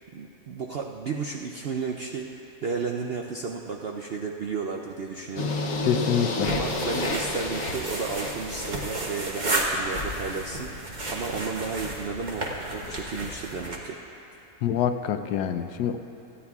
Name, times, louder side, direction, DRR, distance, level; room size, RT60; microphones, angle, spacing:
voice 1, 0.1-5.5 6.5-14.0, right 5 dB, 65° right, 0 dB, 0.6 m, -33 dB
sound 1, 5.4-9.4, left 3 dB, 60° left, 1.2 m, -31 dB
voice 2, 5.8-6.5 14.6-16.0, left 8 dB, 90° left, 8 dB, 1.2 m, -26 dB
sound 2, 6.4-13.8, right 1 dB, 30° right, 1.2 m, -32 dB
27.5 x 9.9 x 2.4 m, 3.0 s
omnidirectional pair, 1.7 m